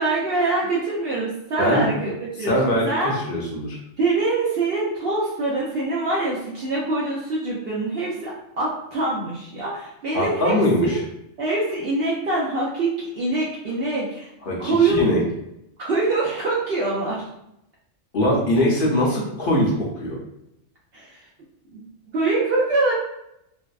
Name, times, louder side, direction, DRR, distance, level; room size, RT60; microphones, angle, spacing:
voice 1, 0.0-2.6 2.8-3.1 4.0-10.6 10.8-11.0 11.4-14.3 14.6-15.0 15.8-17.2 20.9-21.2 21.7-21.8 22.1-22.9, right 3 dB, 65° right, -5 dB, 0.7 m, -24 dB
voice 2, 2.4-3.8 10.1-11.0 14.4-15.2 18.1-19.7 20.0-20.2, left 1 dB, 55° left, -3 dB, 0.7 m, -21 dB
2.6 x 2.0 x 2.3 m, 0.82 s
omnidirectional pair, 1.3 m